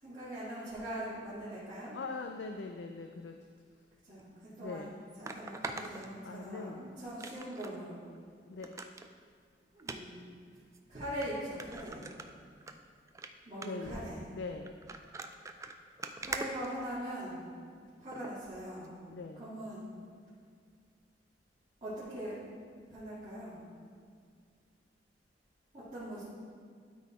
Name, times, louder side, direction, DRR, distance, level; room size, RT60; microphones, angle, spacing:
voice 1, 0.0-2.0 4.0-8.0 9.7-10.3 10.9-12.1 13.5-14.2 16.2-17.4 18.0-18.9 19.4-19.9 21.8-22.4 22.9-23.6 25.7-26.2, right 1 dB, 35° right, -14 dB, 2.2 m, -41 dB
voice 2, 1.9-3.4 4.6-5.0 6.1-6.8 8.5-8.7 13.6-14.0 14.3-14.8 19.1-19.5, left 4 dB, 80° left, 4 dB, 0.4 m, -42 dB
sound 1, 4.2-4.3 5.2-6.7 7.2-7.8 8.1-8.2 8.6-9.1 9.8-10.0 10.7-10.8 11.2-11.3 11.6-12.7 13.1-13.3 13.6-13.9 14.7-17.3 18.1-18.3 18.8-18.9, right 3 dB, 15° right, 0.3 m, -42 dB
12.0 x 4.1 x 4.2 m, 2.1 s
head